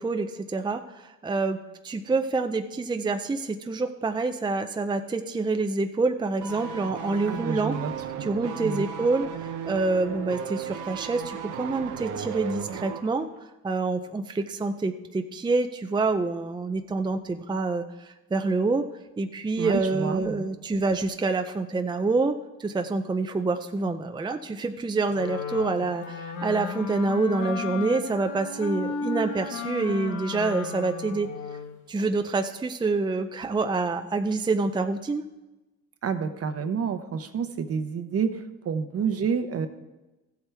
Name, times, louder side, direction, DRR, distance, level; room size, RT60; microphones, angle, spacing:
voice 1, 0.0-1.6 1.8-7.8 8.2-9.3 9.6-13.3 13.6-18.8 19.2-31.3 31.9-35.2, right 3 dB, 15° right, 7 dB, 0.5 m, -27 dB
sound 1, 6.4-13.1 13.4-13.5, right 8 dB, 85° right, 1.0 m, -36 dB
voice 2, 7.3-7.9 8.2-8.3 8.6-8.8 19.6-20.5 36.0-39.7, right 6 dB, 50° right, 9 dB, 1.0 m, -29 dB
Wind instrument woodwind instrument, 25.1-31.8, left 5 dB, 85° left, 1.2 m, -34 dB
14.5 x 8.1 x 3.4 m, 1.1 s
cardioid pair, 90°, 30 cm